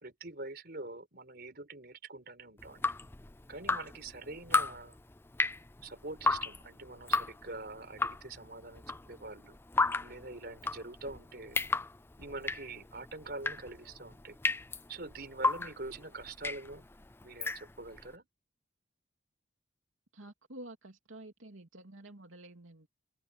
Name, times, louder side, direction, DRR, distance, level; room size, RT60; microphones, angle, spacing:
voice 1, 0.0-2.9 3.5-5.0 5.8-9.6 10.0-11.6 12.2-14.4 14.9-16.9 17.2-18.3, right 2 dB, 50° right, 4.7 m, -45 dB
Drip, 2.6-18.0, left 3 dB, 10° left, 0.4 m, -34 dB
voice 2, 20.1-22.9, right 1 dB, 85° right, 2.9 m, -50 dB
open air
head